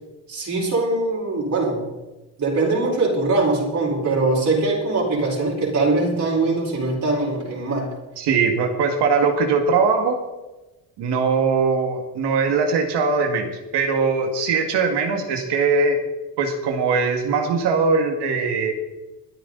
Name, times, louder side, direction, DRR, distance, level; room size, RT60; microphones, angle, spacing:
voice 1, 0.3-1.8 2.4-7.9, right 3 dB, 45° right, -3 dB, 4.6 m, -22 dB
voice 2, 8.2-10.2 11.0-16.0 16.4-18.7, right 4 dB, 75° right, 4 dB, 2.2 m, -21 dB
23.0 x 8.7 x 4.0 m, 1.1 s
cardioid pair, 105°, 41 cm